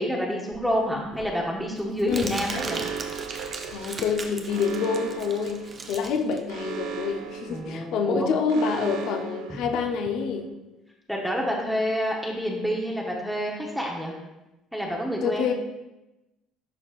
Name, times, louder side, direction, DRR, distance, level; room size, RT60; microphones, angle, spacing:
voice 1, 0.0-2.8 7.5-8.3 11.1-14.1 14.7-15.5, equal, ahead, -2 dB, 0.9 m, -28 dB
Crumpling crinkling, 0.5-7.6, right 3 dB, 30° right, 0.7 m, -38 dB
voice 2, 2.1-2.4 3.7-10.5 15.2-15.5, left 5 dB, 70° left, 5 dB, 0.7 m, -27 dB
Alarm, 2.5-10.3, right 7 dB, 85° right, 0.8 m, -37 dB
11.0 x 4.2 x 2.4 m, 0.97 s
cardioid pair, 125°, 0 cm